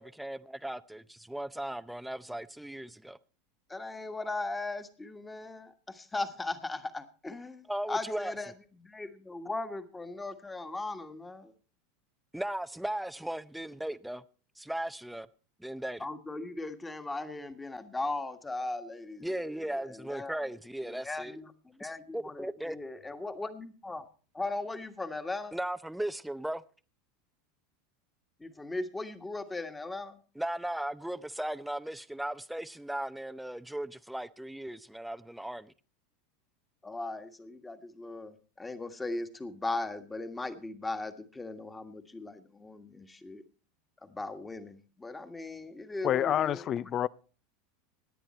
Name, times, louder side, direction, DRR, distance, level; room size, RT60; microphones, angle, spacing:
voice 1, 0.0-3.2 7.7-8.3 12.3-14.2 14.6-15.3 15.6-16.1 19.2-21.4 21.8-22.8 25.5-26.6 30.4-35.7, right 1 dB, 5° right, 0.6 m, -37 dB
voice 2, 3.7-8.5 8.8-11.5 16.0-20.4 20.8-24.0 24.3-25.6 28.4-30.2 36.8-43.4 44.0-46.7, left 2 dB, 15° left, 1.6 m, -38 dB
voice 3, 46.0-47.1, left 11 dB, 40° left, 0.5 m, -28 dB
17.0 x 10.0 x 4.3 m
hypercardioid pair, 95°, 0 cm